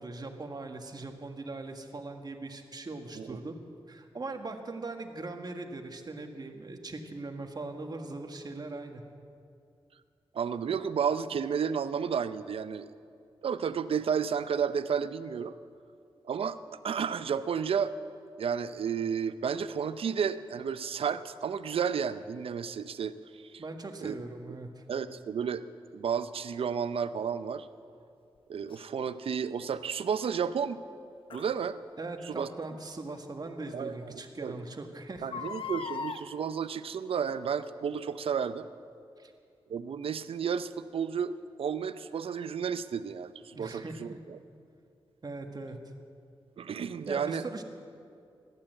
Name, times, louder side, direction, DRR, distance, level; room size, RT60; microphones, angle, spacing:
voice 1, 0.0-3.6 3.9-9.0 23.6-24.8 32.0-35.5 39.2-39.3 43.5-44.2 45.2-45.8 47.1-47.6, right 2 dB, 45° right, 5 dB, 1.7 m, -40 dB
voice 2, 10.3-12.9 13.4-15.5 16.2-16.6 16.8-17.9 18.4-23.6 24.0-24.1 24.9-25.6 25.9-27.7 28.5-30.8 31.3-31.8 32.2-32.5 33.7-34.1 34.4-34.5 35.2-38.7 39.7-44.4 46.6-47.5, right 7 dB, 75° right, 13 dB, 0.6 m, -32 dB
Crying sobbing, 28.7-28.8 31.3-31.5 33.1-33.2 33.7-33.8 34.0-34.1 35.2-36.2 37.2-37.5 38.1-38.2, left 5 dB, 65° left, 0.8 m, -38 dB
16.0 x 11.5 x 7.7 m, 2.5 s
cardioid pair, 65°, 10 cm